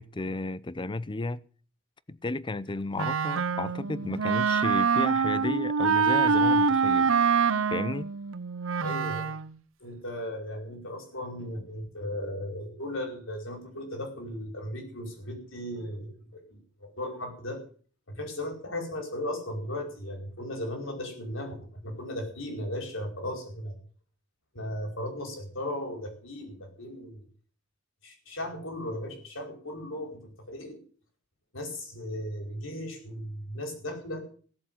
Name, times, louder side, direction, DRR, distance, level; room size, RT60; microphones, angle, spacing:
voice 1, 0.0-1.4 2.1-7.1 7.7-8.1, left 2 dB, 25° left, 0.6 m, -33 dB
Wind instrument woodwind instrument, 3.0-9.5, right 5 dB, 90° right, 0.7 m, -25 dB
voice 2, 8.8-9.3 9.8-17.6 18.1-23.7 24.5-27.2 28.0-30.2 30.5-30.8 31.5-34.2, left 1 dB, 75° left, 5.1 m, -36 dB
16.5 x 7.6 x 7.8 m
head